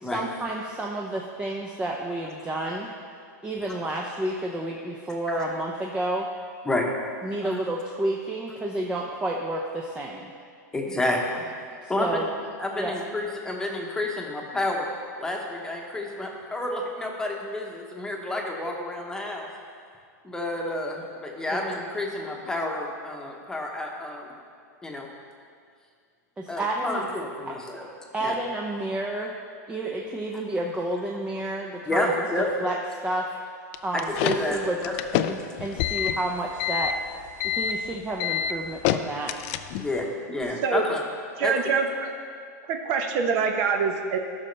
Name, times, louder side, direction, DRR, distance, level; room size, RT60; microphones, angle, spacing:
voice 1, 0.0-2.9 3.4-6.3 7.2-10.3 11.8-12.3 12.7-12.9 21.5-21.6 26.4-27.0 27.5-27.6 28.1-29.3 29.7-32.1 32.6-32.8 33.0-33.3 33.8-34.8 35.1-37.0 37.4-39.3, right 1 dB, 10° right, -1 dB, 0.6 m, -30 dB
voice 2, 10.7-11.5 11.9-12.3 12.6-14.9 15.2-19.5 20.2-24.3 24.8-25.1 26.5-27.9 28.2-28.3 31.9-32.5 33.9-35.0 39.8-41.0 41.4-41.5, left 1 dB, 5° left, 0 dB, 1.1 m, -29 dB
sound 1, 33.7-40.0, left 10 dB, 45° left, 0.4 m, -27 dB
voice 3, 41.4-42.1 42.7-44.2, right 5 dB, 50° right, 5 dB, 0.8 m, -25 dB
13.5 x 6.4 x 3.3 m, 2.2 s
hypercardioid pair, 135°, 10 cm